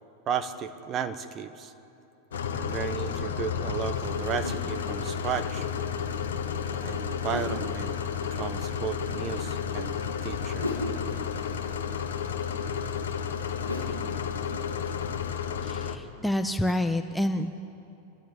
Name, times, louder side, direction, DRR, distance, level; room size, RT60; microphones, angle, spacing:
voice 1, 0.3-1.7 2.5-5.7 6.7-8.0 8.3-9.9 10.2-10.7, right 7 dB, 30° right, 9 dB, 1.2 m, -34 dB
sound 1, 2.3-16.0, left 7 dB, 65° left, 1.3 m, -32 dB
sound 2, 3.8-15.3, left 1 dB, 90° right, 2.9 m, -42 dB
voice 2, 15.6-17.5, left 1 dB, 5° left, 7 dB, 0.7 m, -28 dB
28.5 x 12.5 x 8.1 m, 2.8 s
figure-of-eight pair, 90°, 0 cm